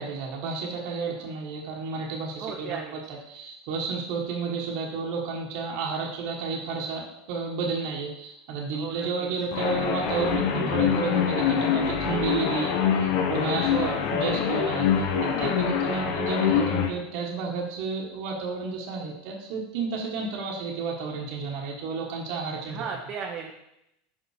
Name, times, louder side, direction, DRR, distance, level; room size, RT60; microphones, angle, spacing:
voice 1, 0.0-2.8 3.1-22.8, right 4 dB, 60° right, -1 dB, 1.3 m, -32 dB
voice 2, 2.4-2.9 8.7-9.3 13.7-14.0 14.3-14.7 22.7-23.5, right 7 dB, 40° right, 1 dB, 0.8 m, -35 dB
sound 1, 9.5-16.9, left 7 dB, 65° left, 1.1 m, -25 dB
5.7 x 5.4 x 5.0 m, 0.81 s
supercardioid pair, 135°, 0 cm